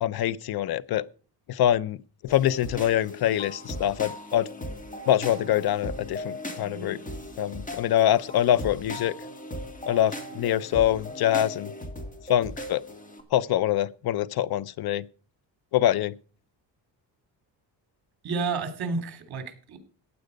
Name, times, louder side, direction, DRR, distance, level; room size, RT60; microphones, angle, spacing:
voice 1, 0.0-1.0 1.5-2.0 2.2-4.5 5.1-7.0 7.4-9.1 9.9-11.7 12.3-12.8 13.3-15.0 15.7-16.1, left 11 dB, 60° left, 0.7 m, -24 dB
sound 1, 2.3-13.2, left 1 dB, 20° left, 2.0 m, -38 dB
voice 2, 18.2-19.8, right 4 dB, 55° right, 2.9 m, -30 dB
15.0 x 9.4 x 5.2 m
cardioid pair, 145°, 44 cm